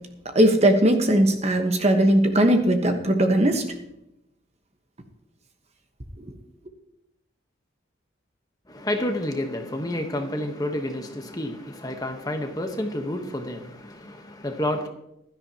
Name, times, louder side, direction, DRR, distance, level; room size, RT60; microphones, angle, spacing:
voice 1, 0.3-3.6, right 1 dB, 35° right, 1.1 m, -19 dB
voice 2, 8.7-14.9, left 1 dB, 20° left, 1.1 m, -29 dB
16.0 x 12.5 x 2.9 m
head